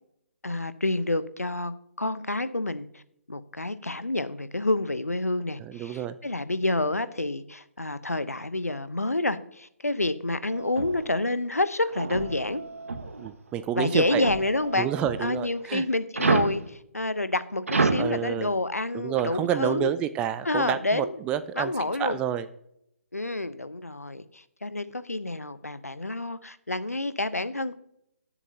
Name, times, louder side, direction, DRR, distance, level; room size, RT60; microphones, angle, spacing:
voice 1, 0.4-3.0 3.3-12.6 13.7-14.9 15.2-19.9 20.4-21.2 21.6-22.2 23.1-27.7, left 2 dB, 85° left, 13 dB, 0.9 m, -28 dB
voice 2, 5.7-6.1 13.2-14.2 14.7-15.8 18.0-18.5 18.9-21.7 22.0-22.5, right 10 dB, 10° right, 12 dB, 0.4 m, -29 dB
sound 1, 10.5-11.2 11.9-13.3 14.0-15.4 16.1-16.6 17.7-18.1 19.2-19.3, right 3 dB, 65° right, 1.4 m, -29 dB
18.0 x 7.1 x 2.8 m, 0.75 s
figure-of-eight pair, 140°, 8 cm